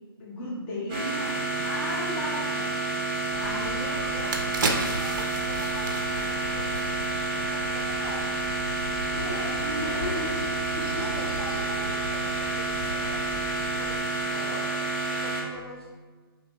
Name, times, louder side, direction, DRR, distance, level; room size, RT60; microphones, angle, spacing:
voice 1, 0.2-2.7 3.4-4.0 9.1-11.0, left 1 dB, 15° left, -7 dB, 0.6 m, -35 dB
sound 1, 0.9-15.4, right 2 dB, 25° right, 1.2 m, -29 dB
voice 2, 3.3-8.3 8.9-9.4 11.0-15.9, equal, 85° left, -3 dB, 1.0 m, -44 dB
sound 2, 3.3-14.0, equal, 45° left, 1.4 m, -39 dB
sound 3, 3.6-3.7 4.1-7.4 7.7-7.8, right 3 dB, 55° right, 0.4 m, -32 dB
3.1 x 2.7 x 2.9 m, 1.4 s
figure-of-eight pair, 150°, 13 cm